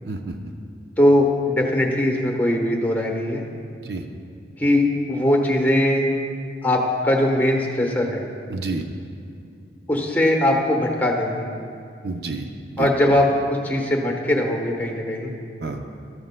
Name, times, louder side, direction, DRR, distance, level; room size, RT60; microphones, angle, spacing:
voice 1, 0.0-0.4 3.8-4.0 8.5-8.8 12.0-13.1 15.6-15.8, right 3 dB, 60° right, 4 dB, 0.6 m, -29 dB
voice 2, 1.0-3.4 4.6-6.0 6.6-8.2 9.9-11.5 12.8-15.3, left 1 dB, 10° left, 1 dB, 1.0 m, -20 dB
13.0 x 13.0 x 2.2 m, 2.4 s
head